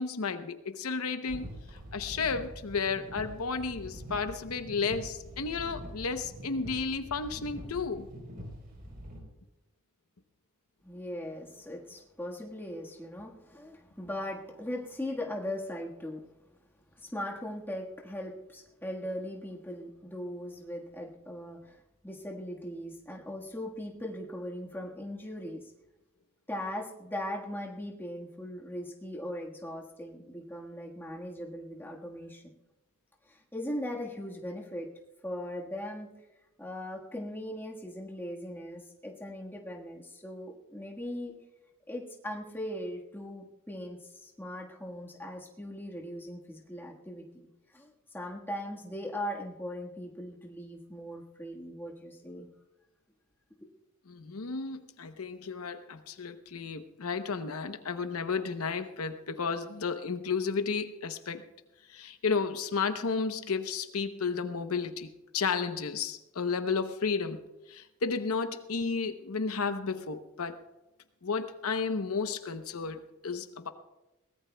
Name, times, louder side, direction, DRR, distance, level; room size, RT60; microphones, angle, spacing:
voice 1, 0.0-1.5 1.9-8.1 54.1-61.4 61.9-67.4 67.7-70.6 71.2-73.7, left 5 dB, 80° left, 9 dB, 0.8 m, -33 dB
sound 1, 1.3-9.2, equal, 45° right, 3.9 m, -45 dB
voice 2, 10.8-16.3 16.9-25.7 26.5-32.4 33.3-34.9 35.2-36.1 36.6-41.3 41.9-47.5 47.7-52.5, left 1 dB, 10° left, -1 dB, 1.5 m, -39 dB
22.5 x 18.0 x 2.3 m, 1.0 s
head